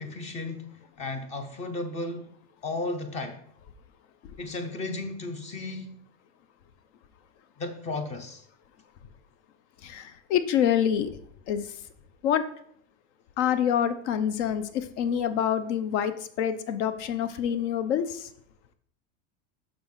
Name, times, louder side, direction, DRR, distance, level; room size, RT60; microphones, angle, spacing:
voice 1, 0.0-2.3 2.6-3.5 4.4-6.0 7.6-8.4, left 2 dB, 20° left, 0.5 m, -34 dB
voice 2, 9.8-11.2 11.5-11.8 12.2-12.4 13.4-18.3, left 9 dB, 65° left, 0.8 m, -26 dB
6.2 x 6.0 x 3.6 m
supercardioid pair, 170°, 37 cm